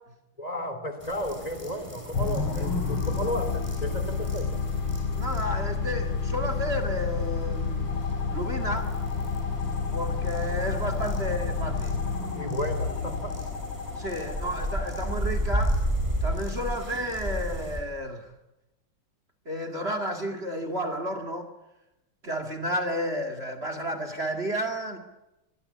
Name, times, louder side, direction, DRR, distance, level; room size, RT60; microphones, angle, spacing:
voice 1, 0.4-4.6 10.9-11.1 12.3-13.4, equal, 20° left, 9 dB, 3.2 m, -33 dB
sound 1, 1.0-17.8, equal, 15° right, 6.0 m, -35 dB
sound 2, 2.1-16.6, left 4 dB, 80° left, 2.6 m, -30 dB
voice 2, 5.2-7.9 8.3-8.9 9.9-12.0 14.0-15.8 16.2-18.3 19.5-21.5 22.2-25.0, equal, 30° right, 8 dB, 2.4 m, -32 dB
sound 3, 7.9-15.2, left 3 dB, 35° left, 1.6 m, -40 dB
25.5 x 21.0 x 8.6 m, 0.94 s
omnidirectional pair, 2.2 m